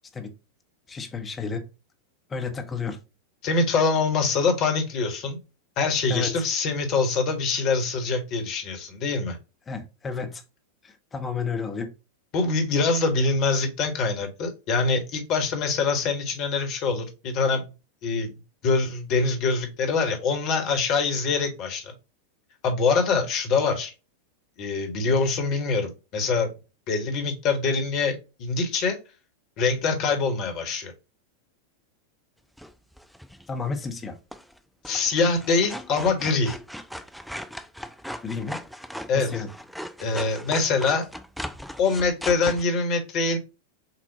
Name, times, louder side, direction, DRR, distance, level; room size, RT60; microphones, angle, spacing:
voice 1, 0.9-1.7 2.3-3.0 6.1-6.4 9.7-10.4 10.8-11.9 33.5-34.2 38.2-38.6 39.1-39.5, left 5 dB, 20° left, 5 dB, 1.0 m, -31 dB
voice 2, 3.4-5.4 5.8-9.4 12.3-17.6 18.0-18.3 18.6-21.9 22.6-23.9 24.6-26.5 26.9-29.0 29.6-30.9 34.8-36.6 39.1-39.3 40.0-41.1 41.8-43.4, left 4 dB, 40° left, 4 dB, 1.4 m, -24 dB
sound 1, 32.6-33.4 34.3-34.6 34.8-42.6, equal, ahead, 0.5 m, -38 dB
7.0 x 2.4 x 2.8 m, 0.29 s
figure-of-eight pair, 90°, 0 cm